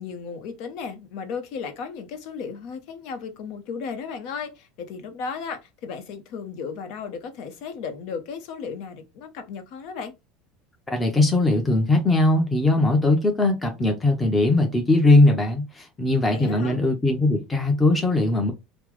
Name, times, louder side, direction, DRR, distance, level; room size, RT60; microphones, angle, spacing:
voice 1, 0.0-10.1 16.3-16.8, left 5 dB, 65° left, 0.7 m, -35 dB
voice 2, 10.9-18.5, left 2 dB, 15° left, 0.8 m, -20 dB
3.4 x 2.0 x 3.1 m
hypercardioid pair, 95°, 0 cm